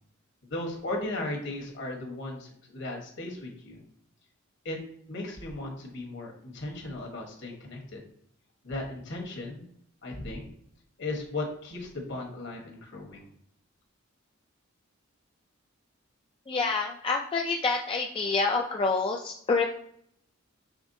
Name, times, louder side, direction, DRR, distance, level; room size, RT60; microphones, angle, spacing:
voice 1, 0.5-3.8 4.6-4.8 5.1-8.0 8.6-9.6 10.0-10.4 11.0-13.3, left 2 dB, 60° left, 1 dB, 1.2 m, -36 dB
voice 2, 16.5-19.7, left 4 dB, 25° left, 1 dB, 0.3 m, -27 dB
5.0 x 3.4 x 2.6 m, 0.68 s
head